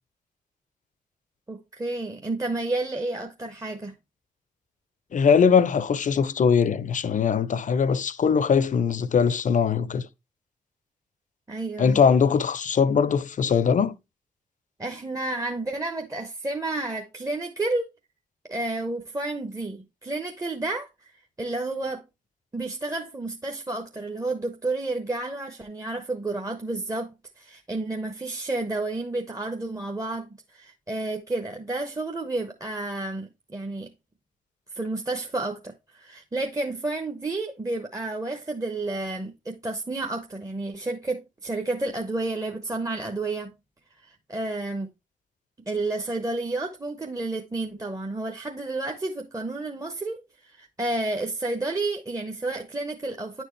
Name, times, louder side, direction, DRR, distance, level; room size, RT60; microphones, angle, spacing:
voice 1, 1.5-3.9 11.5-12.0 14.8-17.9 18.5-21.1 21.4-22.0 22.5-27.1 27.4-33.9 34.7-43.5 44.0-44.9 45.7-53.4, right 2 dB, 20° right, 1.0 m, -31 dB
voice 2, 5.1-10.1 11.8-13.9, left 6 dB, 50° left, 0.7 m, -21 dB
9.4 x 4.5 x 3.1 m
hypercardioid pair, 45°, 17 cm